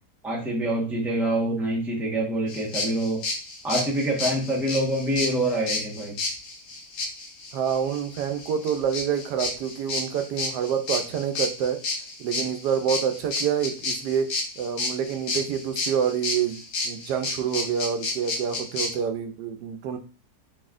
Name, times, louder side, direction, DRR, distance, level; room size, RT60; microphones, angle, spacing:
voice 1, 0.2-3.2 3.6-6.1, right 1 dB, ahead, -3 dB, 0.8 m, -26 dB
sound 1, 2.5-18.9, left 3 dB, 60° left, 1.3 m, -31 dB
voice 2, 7.5-11.8 12.2-14.3 14.6-20.0, right 8 dB, 80° right, 7 dB, 1.2 m, -27 dB
4.2 x 4.1 x 2.5 m, 0.36 s
omnidirectional pair, 1.8 m